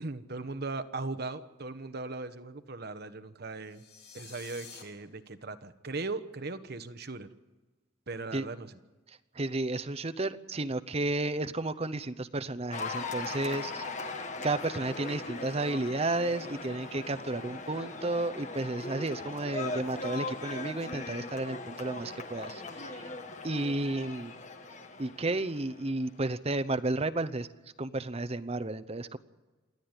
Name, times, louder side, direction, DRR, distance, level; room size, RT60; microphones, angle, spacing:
voice 1, 0.0-3.8 4.1-7.3 8.1-8.7, right 3 dB, 50° right, 11 dB, 1.1 m, -38 dB
sound 1, 3.6-4.8, left 6 dB, 50° left, 3.6 m, -49 dB
voice 2, 9.1-13.8 14.1-23.1 23.4-24.3 25.0-27.5 27.8-29.2, right 2 dB, 30° right, 9 dB, 0.7 m, -32 dB
Cheering / Applause, 12.7-26.1, left 3 dB, 35° left, 1.4 m, -39 dB
27.5 x 10.5 x 9.7 m, 1.2 s
head